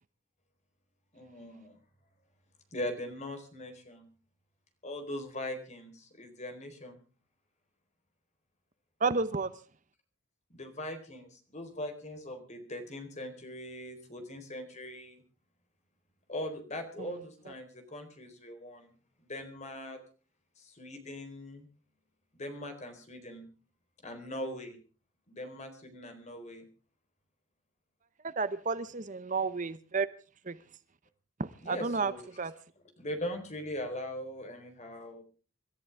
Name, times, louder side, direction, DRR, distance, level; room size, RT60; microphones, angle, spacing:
voice 1, 1.1-1.8 2.7-4.1 4.8-7.0 10.5-15.2 16.3-18.9 19.3-20.0 20.6-21.7 22.4-23.5 24.0-24.8 25.3-26.6 31.6-32.2 33.0-35.2, left 1 dB, 35° left, 6 dB, 4.1 m, -40 dB
voice 2, 9.0-9.5 17.0-17.2 28.2-30.1 30.5-30.6 31.4-32.5, right 4 dB, 40° right, 14 dB, 0.8 m, -32 dB
26.0 x 13.5 x 3.5 m, 0.38 s
head